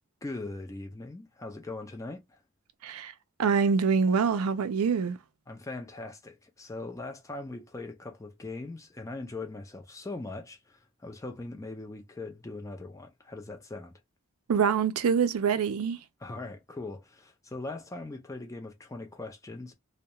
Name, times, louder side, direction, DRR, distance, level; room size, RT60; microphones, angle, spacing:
voice 1, 0.2-2.4 5.5-13.9 16.2-19.7, left 2 dB, 15° left, 0.4 m, -40 dB
voice 2, 3.4-5.2 14.5-16.0, right 6 dB, 85° right, 0.4 m, -25 dB
2.3 x 2.1 x 2.8 m
head